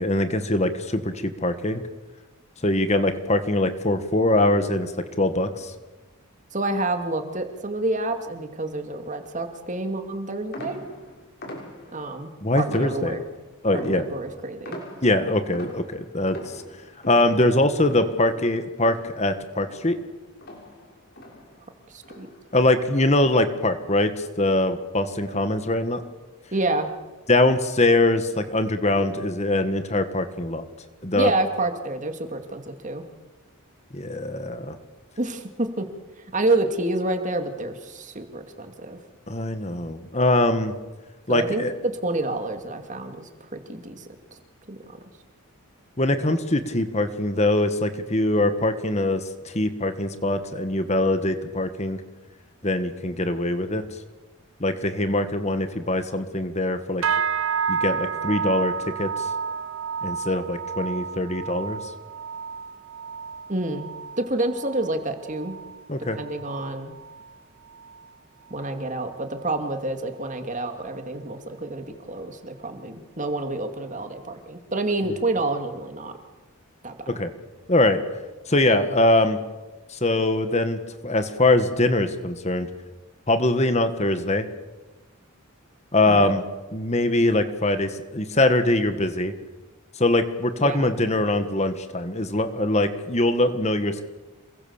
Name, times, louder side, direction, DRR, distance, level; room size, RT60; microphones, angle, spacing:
voice 1, 0.0-1.8 2.6-4.9 5.2-5.7 12.4-13.2 13.6-14.0 15.0-16.6 17.1-20.0 22.5-26.0 27.3-30.7 31.0-31.3 33.9-34.8 39.3-40.7 41.3-41.7 46.0-52.0 52.6-53.8 54.6-57.0 57.7-59.3 60.0-61.9 65.9-66.2 77.1-77.3 77.7-78.0 78.5-79.4 79.9-82.7 83.3-84.5 85.9-86.4 86.7-89.3 90.0-94.0, left 2 dB, 30° left, 9 dB, 1.7 m, -22 dB
voice 2, 6.5-10.8 11.9-13.3 13.7-14.8 21.9-22.3 26.5-26.9 31.1-33.1 35.2-35.9 36.3-39.0 41.3-44.1 44.7-45.0 63.5-63.8 64.2-65.6 66.0-66.9 68.5-76.1 76.8-76.9 86.1-86.3 90.6-90.9, right 2 dB, 35° right, 6 dB, 2.5 m, -28 dB
sound 1, 10.5-12.1 12.7-13.4 13.8-19.4 19.7-21.7 22.0-22.4 22.9-23.4, equal, 50° left, 6.6 m, -41 dB
sound 2, 57.0-66.6 66.9-67.3 67.7-68.0 68.6-68.7, right 6 dB, 65° right, 0.9 m, -31 dB
28.0 x 22.5 x 7.3 m, 1.2 s
head